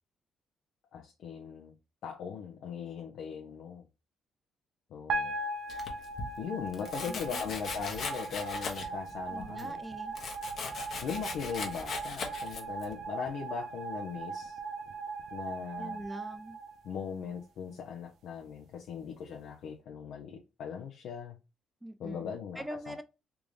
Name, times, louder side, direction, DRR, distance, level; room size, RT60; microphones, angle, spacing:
voice 1, 0.9-1.7 2.0-3.8 4.9-5.4 6.4-9.8 11.0-14.6 15.3-16.0 16.8-21.4 22.0-23.0, left 7 dB, 75° left, 0.6 m, -39 dB
sound 1, 5.1-17.4, right 3 dB, 75° right, 0.5 m, -39 dB
Coin (dropping), 5.2-5.4 5.8-6.4 6.7-6.9 7.6-7.7 7.9-8.2 8.7-8.9 9.6-9.7, left 1 dB, 10° left, 1.0 m, -54 dB
Domestic sounds home sounds, 5.7-6.3 6.9-9.1 9.4-12.9, left 4 dB, 60° left, 0.9 m, -39 dB
voice 2, 7.1-7.5 9.3-10.1 15.8-16.6 21.8-23.0, right 1 dB, 10° right, 0.5 m, -43 dB
3.5 x 2.5 x 3.1 m
cardioid pair, 90°, 0 cm